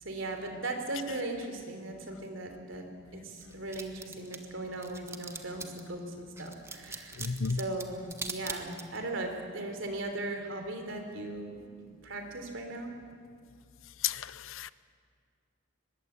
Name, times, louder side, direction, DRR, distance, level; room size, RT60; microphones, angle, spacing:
voice 1, 0.0-2.9 3.1-11.6 12.0-12.9, right 2 dB, 65° right, 4 dB, 3.8 m, -38 dB
sound 1, 3.4-5.9 6.4-9.1, right 4 dB, 15° right, 1.4 m, -41 dB
voice 2, 7.2-7.6 14.0-14.7, left 6 dB, 75° left, 17 dB, 0.7 m, -32 dB
23.5 x 21.0 x 8.4 m, 2.1 s
head